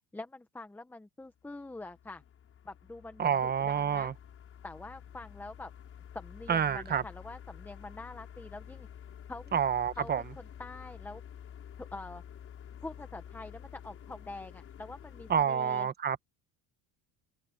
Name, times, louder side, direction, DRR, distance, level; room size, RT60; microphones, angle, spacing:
voice 1, 0.1-2.2 2.6-4.1 4.6-5.7 6.1-8.9 9.3-9.6 10.0-11.2 11.8-12.2 12.8-15.9, left 2 dB, 5° left, 1.1 m, -45 dB
sound 1, 1.4-15.4, left 9 dB, 40° left, 6.0 m, -50 dB
voice 2, 3.2-4.1 6.5-7.0 9.5-10.2 15.3-16.2, right 8 dB, 30° right, 1.1 m, -28 dB
open air
cardioid pair, 145°, 33 cm